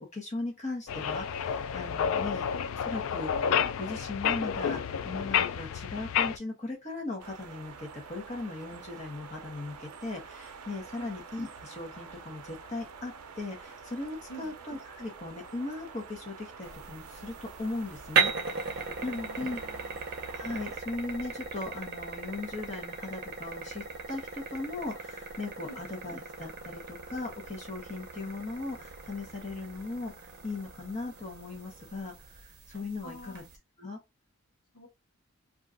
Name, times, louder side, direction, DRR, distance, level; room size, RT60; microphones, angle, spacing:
voice 1, 0.1-2.4 2.8-19.6 20.3-33.4 33.8-34.0, left 2 dB, 30° left, 0.7 m, -38 dB
sound 1, 0.9-6.4, left 8 dB, 65° left, 0.3 m, -30 dB
sound 2, 7.2-20.8, right 5 dB, 90° right, 0.5 m, -47 dB
sound 3, 16.6-33.6, right 5 dB, 45° right, 0.6 m, -37 dB
voice 2, 19.0-20.0 25.6-25.8 33.0-33.5 34.7-34.9, right 1 dB, 90° left, 0.9 m, -47 dB
2.4 x 2.2 x 3.6 m
head